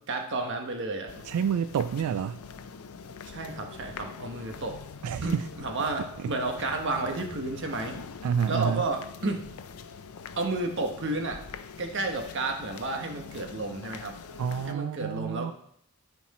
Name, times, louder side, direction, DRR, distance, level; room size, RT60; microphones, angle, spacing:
voice 1, 0.0-1.2 3.3-4.8 5.2-8.0 8.5-9.4 10.4-11.4 11.8-14.2 14.7-15.5, right 2 dB, 55° right, 3 dB, 1.3 m, -31 dB
sound 1, 1.1-14.7, left 5 dB, 75° left, 0.5 m, -44 dB
voice 2, 1.2-2.4 5.0-5.5 8.2-8.8 14.4-15.5, right 7 dB, 85° right, 13 dB, 0.3 m, -28 dB
13.5 x 4.5 x 4.2 m, 0.68 s
head